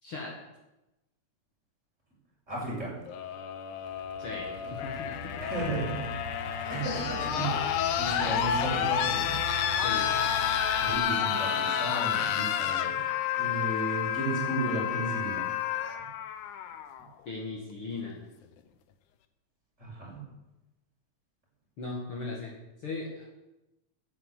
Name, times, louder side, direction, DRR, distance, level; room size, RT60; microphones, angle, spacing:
voice 1, 0.0-0.3 4.2-5.4 9.8-10.1 17.3-18.2 21.8-22.5 22.8-23.3, left 3 dB, 50° left, -3 dB, 2.7 m, -38 dB
voice 2, 2.5-3.0 5.4-9.4 10.8-13.0 13.4-15.5 19.8-20.3, right 2 dB, 20° right, -5 dB, 6.5 m, -34 dB
sound 1, 3.1-17.0 18.3-18.4, left 9 dB, 85° left, 2.4 m, -30 dB
Idling / Accelerating revving vroom, 3.8-11.0, right 2 dB, 40° right, 0.9 m, -42 dB
11.0 x 9.8 x 8.3 m, 0.98 s
omnidirectional pair, 3.4 m